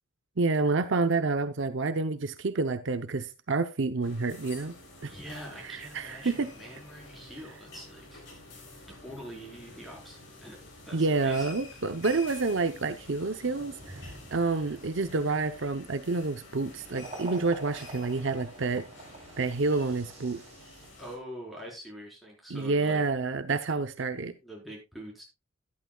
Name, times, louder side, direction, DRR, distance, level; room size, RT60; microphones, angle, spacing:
voice 1, 0.4-4.7 5.0-5.1 5.6-6.5 10.9-18.9 19.4-20.4 22.5-24.3, right 3 dB, 65° right, 0.7 m, -28 dB
sound 1, 4.0-21.2, left 2 dB, 60° left, 3.8 m, -49 dB
voice 2, 5.0-8.2 8.9-10.6 10.9-11.5 21.0-23.0 24.4-25.2, equal, ahead, 4.5 m, -44 dB
sound 2, 13.4-20.9, right 2 dB, 30° right, 3.6 m, -47 dB
12.5 x 11.0 x 2.3 m
head